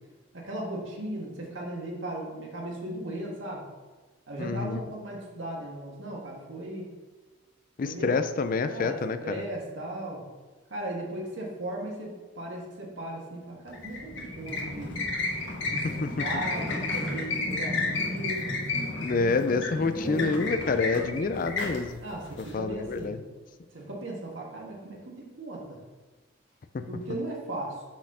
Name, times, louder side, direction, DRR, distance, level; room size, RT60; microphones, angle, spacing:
voice 1, 0.3-3.6 4.3-6.9 7.8-8.1 8.6-10.2 10.7-15.0 15.7-15.8 16.2-18.5 19.9-20.3 22.0-23.2 23.7-25.8 26.9-27.8, right 1 dB, 75° right, -2 dB, 1.8 m, -37 dB
voice 2, 4.4-4.8 7.8-9.4 16.0-16.3 17.5-17.6 19.0-22.0 22.5-23.2 26.7-26.9, left 4 dB, 45° left, 10 dB, 0.4 m, -28 dB
sound 1, 13.7-23.0, left 2 dB, 70° left, 1.3 m, -32 dB
6.1 x 4.3 x 5.5 m, 1.3 s
head